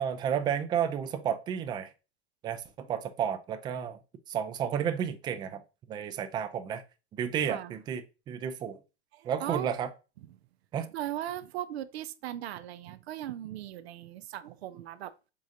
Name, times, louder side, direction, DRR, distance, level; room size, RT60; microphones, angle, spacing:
voice 1, 0.0-1.9 2.4-4.0 4.3-5.6 5.9-6.8 7.2-8.8 9.2-9.9 10.7-10.9, right 8 dB, 15° right, 0.3 m, -32 dB
voice 2, 7.4-7.8 9.1-9.7 10.9-15.1, right 12 dB, 70° right, 0.5 m, -38 dB
5.0 x 3.8 x 2.6 m
hypercardioid pair, 105°, 33 cm